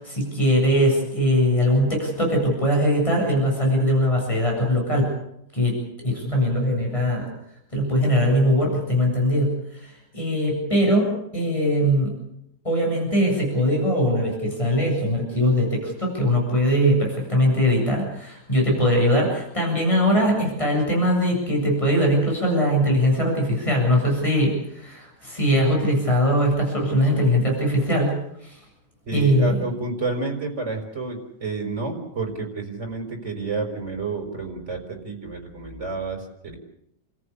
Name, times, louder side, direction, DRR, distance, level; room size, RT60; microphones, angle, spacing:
voice 1, 0.0-5.1 5.5-5.8 6.0-7.3 7.7-12.1 12.6-28.2 28.4-28.6 29.1-29.5, equal, 15° left, -1 dB, 8.2 m, -21 dB
voice 2, 29.1-36.6, right 3 dB, 40° right, 3 dB, 5.4 m, -30 dB
30.0 x 14.5 x 8.5 m, 0.79 s
omnidirectional pair, 1.9 m